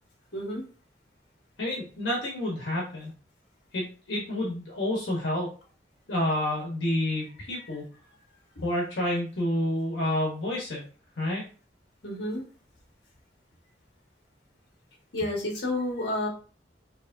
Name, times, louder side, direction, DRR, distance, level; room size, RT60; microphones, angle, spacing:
voice 1, 0.3-0.6 12.0-12.4 15.1-16.3, left 1 dB, 70° left, -1 dB, 1.6 m, -30 dB
voice 2, 1.6-3.1 3.7-5.5 6.1-7.9 8.6-10.8 11.2-11.4, left 1 dB, 90° left, -3 dB, 1.1 m, -29 dB
4.7 x 3.0 x 2.6 m, 0.38 s
head